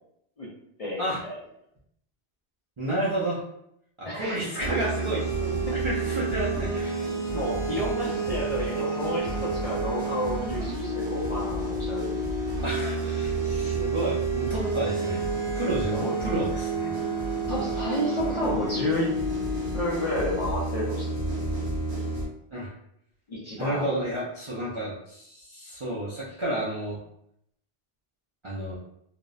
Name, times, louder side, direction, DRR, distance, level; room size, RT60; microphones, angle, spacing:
voice 1, 0.8-1.3 4.1-4.4 5.7-5.8 7.3-12.2 15.9-16.1 17.5-19.1 19.7-21.4 23.3-24.0, equal, 50° left, -6 dB, 0.5 m, -31 dB
voice 2, 2.8-3.4 4.0-7.2 8.3-8.4 8.8-8.9 9.3-9.4 12.6-15.2 15.5-16.9 22.5-22.7 23.6-27.0 28.4-28.8, right 1 dB, 50° right, -8 dB, 0.4 m, -31 dB
sound 1, 4.6-22.3, right 3 dB, 75° right, 1.1 m, -29 dB
2.6 x 2.0 x 2.3 m, 0.74 s
omnidirectional pair, 1.1 m